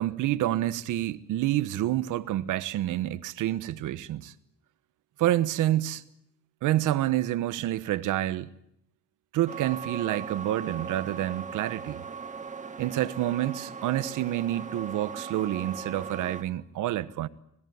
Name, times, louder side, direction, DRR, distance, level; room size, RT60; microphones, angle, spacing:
voice 1, 0.0-4.3 5.2-6.0 6.6-8.5 9.3-12.0 12.8-17.3, right 14 dB, 85° right, 1.2 m, -28 dB
sound 1, 9.5-16.4, right 5 dB, 25° right, 2.2 m, -39 dB
25.5 x 19.5 x 9.5 m
cardioid pair, 90°, 30 cm